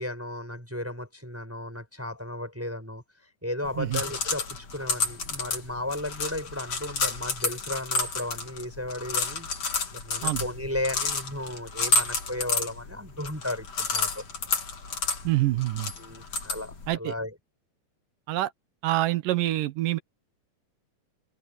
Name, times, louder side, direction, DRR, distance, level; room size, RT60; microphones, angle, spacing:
voice 1, 0.0-3.0 3.4-9.5 9.9-14.2 16.0-17.4, left 1 dB, 5° right, 5.8 m, -34 dB
sound 1, 3.6-17.0, left 4 dB, 50° left, 4.5 m, -31 dB
voice 2, 15.2-15.9 16.9-17.1 18.3-18.5 18.8-20.0, right 16 dB, 80° right, 2.6 m, -26 dB
omnidirectional pair, 3.8 m